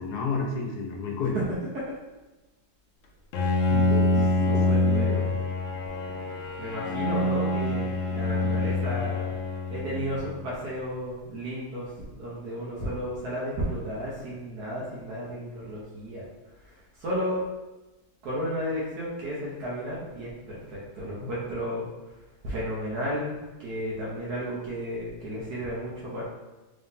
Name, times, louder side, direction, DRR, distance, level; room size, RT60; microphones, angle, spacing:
voice 1, 0.0-1.4 3.7-5.3, left 4 dB, 85° left, 1 dB, 1.3 m, -31 dB
Bowed string instrument, 3.3-10.4, left 2 dB, 65° left, 0.8 m, -26 dB
voice 2, 4.5-5.3 6.6-9.3 9.7-16.3 17.0-17.4 18.2-21.9 22.4-23.3 23.6-26.2, equal, 90° right, -6 dB, 1.4 m, -33 dB
3.8 x 2.7 x 3.6 m, 1.1 s
omnidirectional pair, 1.6 m